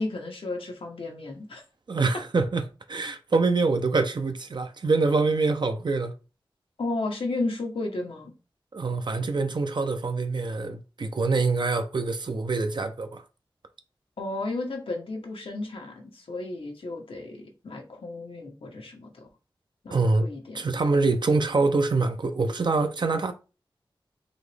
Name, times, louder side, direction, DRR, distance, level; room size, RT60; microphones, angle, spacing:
voice 1, 0.0-1.6 6.8-8.3 14.2-19.3 19.8-20.6, left 2 dB, 90° left, 1.0 m, -33 dB
voice 2, 1.9-6.1 8.7-13.2 19.9-20.3 20.5-23.3, right 3 dB, 60° right, 0.5 m, -25 dB
4.1 x 2.9 x 3.3 m
wide cardioid pair, 80°, 9 cm